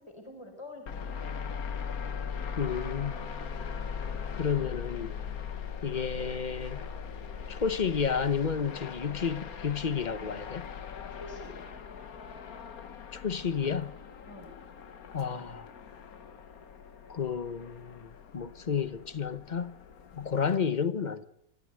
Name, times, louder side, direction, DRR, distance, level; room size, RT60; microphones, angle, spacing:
voice 1, 0.0-1.3 11.1-11.7 14.2-14.5, left 2 dB, 20° left, 4.3 m, -47 dB
sound 1, 0.9-20.5, left 6 dB, 90° left, 1.8 m, -40 dB
voice 2, 2.6-3.2 4.3-5.1 5.8-6.9 7.5-10.7 13.1-13.9 15.1-15.7 17.1-19.8 20.2-21.2, left 6 dB, 35° left, 0.9 m, -31 dB
24.5 x 14.0 x 7.9 m
omnidirectional pair, 1.5 m